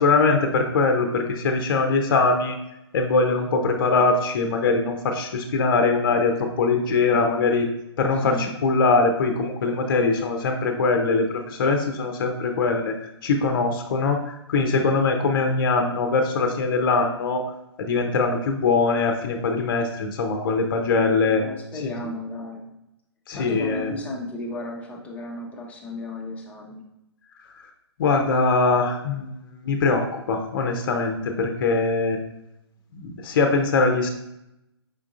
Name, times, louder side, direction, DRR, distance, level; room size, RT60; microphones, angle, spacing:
voice 1, 0.0-2.6 2.9-7.7 8.0-13.0 13.2-17.4 17.8-21.4 23.3-23.9 28.0-29.3 29.6-32.2 32.9-34.1, left 3 dB, 50° left, 5 dB, 0.6 m, -22 dB
voice 2, 7.0-7.5 8.2-8.5 20.9-22.7 23.3-26.8, left 1 dB, 10° left, -1 dB, 0.6 m, -34 dB
5.1 x 3.5 x 2.5 m, 0.85 s
figure-of-eight pair, 125°, 14 cm